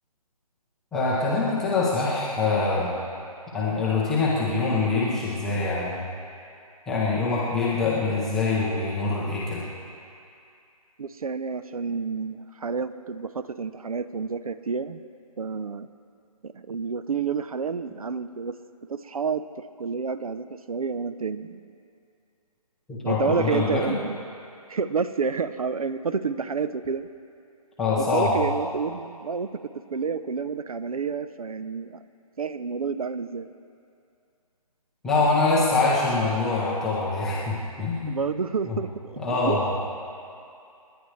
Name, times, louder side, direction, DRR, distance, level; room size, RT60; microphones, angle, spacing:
voice 1, 0.9-2.9 3.5-6.0 6.9-9.6 23.0-23.8 27.8-28.4 35.0-38.2 38.7-38.8 39.2-39.8, left 3 dB, ahead, -8 dB, 0.6 m, -24 dB
voice 2, 11.0-15.0 15.4-15.9 16.4-18.6 18.9-21.6 23.0-24.2 24.7-27.1 28.0-32.0 32.4-33.5 38.1-39.8, right 5 dB, 65° right, 13 dB, 0.7 m, -29 dB
29.5 x 10.0 x 3.2 m, 2.5 s
hypercardioid pair, 170°, 20 cm